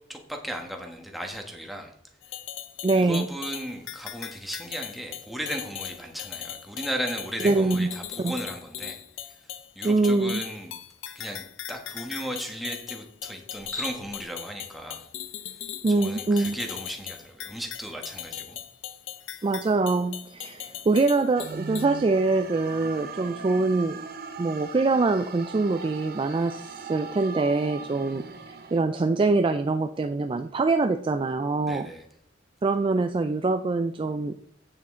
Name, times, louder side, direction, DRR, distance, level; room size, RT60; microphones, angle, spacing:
voice 1, 0.1-1.9 2.9-9.0 9.3-9.4 9.7-10.7 11.1-15.1 16.0-18.6 19.4-19.5 31.6-32.0, equal, ahead, 2 dB, 1.2 m, -36 dB
sound 1, 2.2-21.8, left 11 dB, 70° left, 0.6 m, -39 dB
voice 2, 2.8-3.3 7.4-7.9 8.2-8.4 9.8-10.4 15.8-16.6 19.4-24.0 24.4-31.9 32.6-34.3, right 3 dB, 25° right, 8 dB, 0.3 m, -24 dB
Cricket, 13.5-14.3, left 2 dB, 45° left, 2.4 m, -36 dB
sound 2, 21.3-28.8, right 5 dB, 50° right, 0.9 m, -39 dB
8.4 x 7.3 x 3.7 m, 0.70 s
head